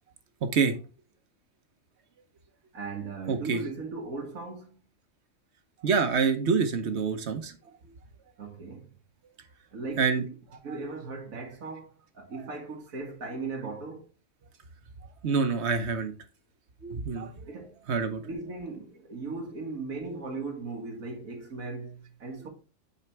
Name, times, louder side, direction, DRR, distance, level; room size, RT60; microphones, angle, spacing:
voice 1, 2.7-4.8 8.4-8.9 9.7-10.4 10.6-14.1 17.5-17.8 18.2-22.5, right 3 dB, 90° right, 2.0 m, -38 dB
voice 2, 3.3-3.6 5.8-7.5 10.0-10.2 15.2-16.1 16.8-17.3 17.9-18.2, right 5 dB, 55° right, 1.1 m, -26 dB
8.4 x 4.3 x 3.3 m
omnidirectional pair, 1.4 m